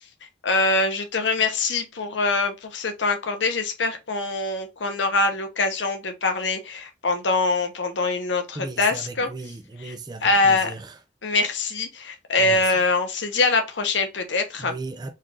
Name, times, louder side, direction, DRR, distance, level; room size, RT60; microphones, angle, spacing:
voice 1, 0.4-9.3 9.8-9.9 10.2-10.7 11.2-14.7, left 3 dB, 80° left, 0.9 m, -23 dB
voice 2, 8.5-11.0 12.4-12.8 14.6-15.1, right 3 dB, 20° right, 0.4 m, -36 dB
4.1 x 3.4 x 2.4 m
head